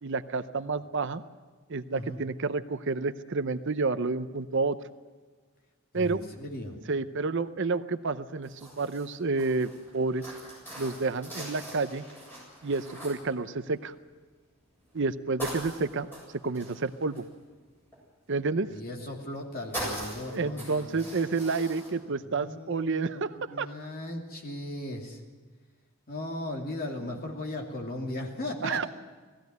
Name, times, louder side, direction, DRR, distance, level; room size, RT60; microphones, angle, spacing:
voice 1, 0.0-1.2 1.7-4.8 5.9-6.2 6.9-10.3 10.8-12.0 12.6-13.9 14.9-16.1 16.4-17.3 18.3-18.7 20.3-23.7 26.8-27.0 28.6-28.9, right 3 dB, 55° right, 12 dB, 0.7 m, -30 dB
voice 2, 5.9-6.8 18.7-21.0 22.3-25.2 26.1-28.9, left 1 dB, 45° left, 0 dB, 2.9 m, -37 dB
sound 1, 8.4-14.0 14.6-15.0 15.4-18.0 19.0-19.4 19.7-21.9, right 1 dB, 10° left, 7.7 m, -41 dB
18.5 x 15.5 x 9.4 m, 1.4 s
head